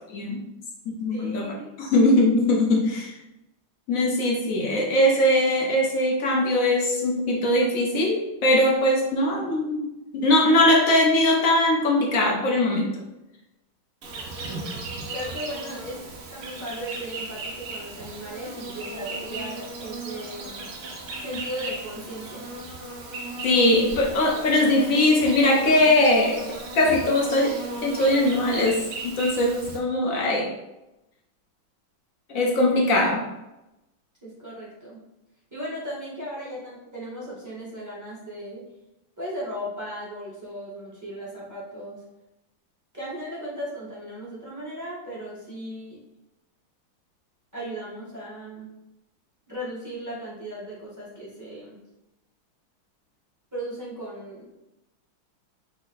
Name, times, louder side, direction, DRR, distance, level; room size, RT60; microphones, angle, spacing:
voice 1, 0.1-0.4 0.9-1.5 1.8-3.1 3.9-9.9 10.1-12.9 23.4-26.4 26.7-30.5 32.3-33.3, left 1 dB, 70° left, -1 dB, 0.8 m, -21 dB
voice 2, 1.1-1.8 15.1-16.0 16.3-20.7 21.2-22.4 34.2-35.0 35.5-38.6 39.2-42.0 42.9-46.0 47.5-48.7 49.5-51.7 53.5-54.5, equal, 10° right, -7 dB, 1.0 m, -36 dB
Insect, 14.0-29.8, right 2 dB, 65° right, 0.8 m, -36 dB
5.4 x 2.1 x 3.9 m, 0.93 s
omnidirectional pair, 2.2 m